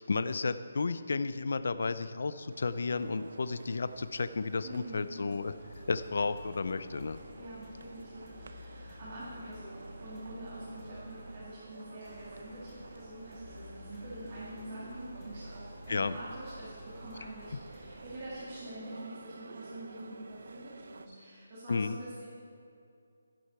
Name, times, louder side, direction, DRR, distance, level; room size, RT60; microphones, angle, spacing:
voice 1, 0.0-7.2 15.9-16.1 21.7-22.0, left 4 dB, 50° left, 13 dB, 0.5 m, -32 dB
sound 1, 2.5-21.1, right 3 dB, 50° right, 0.8 m, -51 dB
voice 2, 4.6-5.2 7.3-22.2, right 1 dB, 25° right, -11 dB, 3.0 m, -46 dB
sound 2, 5.4-18.3, left 1 dB, 10° left, 1.7 m, -51 dB
13.0 x 11.5 x 4.7 m, 2.5 s
hypercardioid pair, 175°, 0 cm